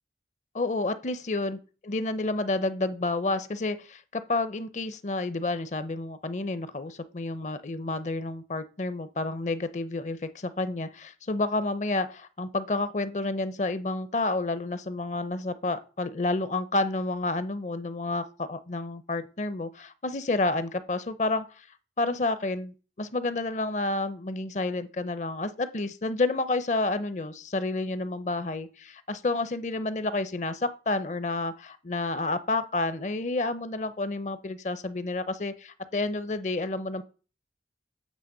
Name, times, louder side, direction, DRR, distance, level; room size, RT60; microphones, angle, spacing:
voice 1, 0.5-21.7 22.0-37.0, left 2 dB, 40° left, 13 dB, 0.6 m, -30 dB
8.4 x 3.3 x 6.5 m, 0.36 s
head